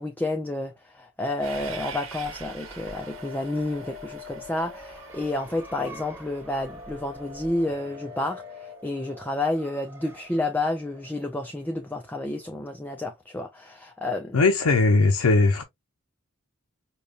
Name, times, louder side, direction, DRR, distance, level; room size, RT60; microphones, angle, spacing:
voice 1, 0.0-14.4, left 2 dB, 10° left, 0.3 m, -30 dB
Train, 1.4-7.7, right 4 dB, 60° right, 1.0 m, -44 dB
sound 1, 2.8-5.8 7.7-8.8, left 11 dB, 45° right, 0.6 m, -45 dB
sound 2, 3.0-12.4, right 1 dB, 10° right, 1.1 m, -47 dB
voice 2, 14.3-15.6, left 3 dB, 80° left, 0.5 m, -19 dB
5.0 x 2.2 x 2.4 m
head